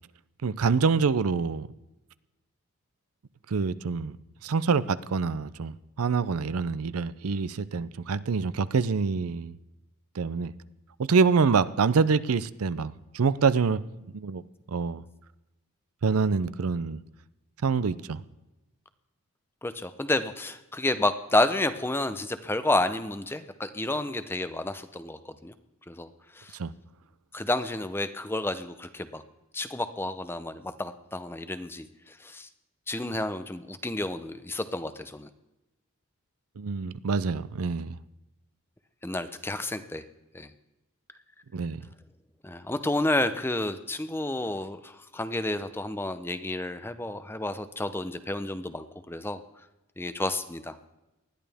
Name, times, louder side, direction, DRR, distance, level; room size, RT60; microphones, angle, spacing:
voice 1, 0.4-1.7 3.5-4.2 4.4-9.6 10.2-10.5 11.0-13.8 14.1-14.4 14.7-15.0 16.0-17.0 17.6-18.2 26.6-26.7 36.6-38.0 41.5-41.8, right 5 dB, 75° right, 0.5 m, -26 dB
voice 2, 19.6-25.5 25.9-26.1 26.4-26.6 27.3-29.2 29.5-32.5 32.9-35.3 39.0-40.0 40.3-40.5 42.4-49.4 50.0-50.7, left 2 dB, 10° left, 0.6 m, -30 dB
20.0 x 12.5 x 3.5 m
head